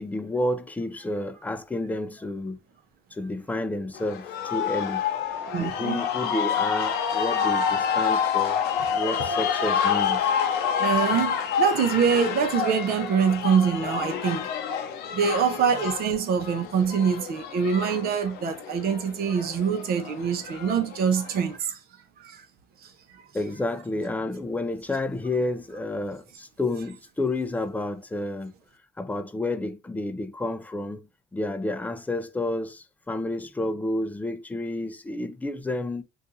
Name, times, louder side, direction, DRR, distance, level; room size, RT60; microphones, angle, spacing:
voice 1, 0.0-2.6 3.1-5.0 5.6-8.6 8.9-10.3 23.3-28.5 29.0-31.1 31.3-36.0, left 2 dB, 10° left, 0.4 m, -30 dB
sound 1, 3.9-21.5, left 7 dB, 75° left, 0.6 m, -28 dB
voice 2, 5.5-6.1 10.8-14.5 14.8-14.9 15.1-21.8 22.2-22.4 22.8-22.9, right 7 dB, 65° right, 0.7 m, -24 dB
2.6 x 2.4 x 4.0 m
cardioid pair, 110°, 17 cm